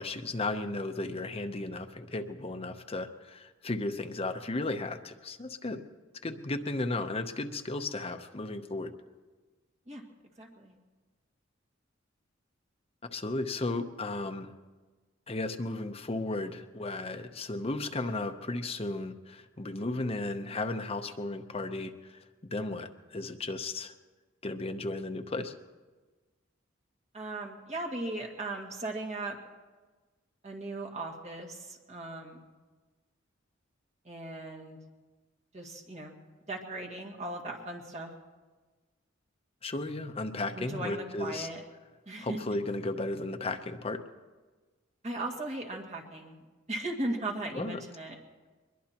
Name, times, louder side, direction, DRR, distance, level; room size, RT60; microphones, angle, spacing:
voice 1, 0.0-5.8 6.2-8.9 13.1-14.5 15.3-22.2 22.5-23.9 24.4-25.5 39.6-41.5 42.2-44.0 47.6-47.8, left 2 dB, 30° left, 7 dB, 0.8 m, -34 dB
voice 2, 10.4-10.7 27.1-29.4 30.4-32.5 34.0-34.8 35.5-36.2 36.5-38.1 40.5-41.6 42.1-42.4 45.0-46.4 46.7-48.2, right 2 dB, 35° right, 1 dB, 2.0 m, -37 dB
22.5 x 21.5 x 3.0 m, 1.3 s
head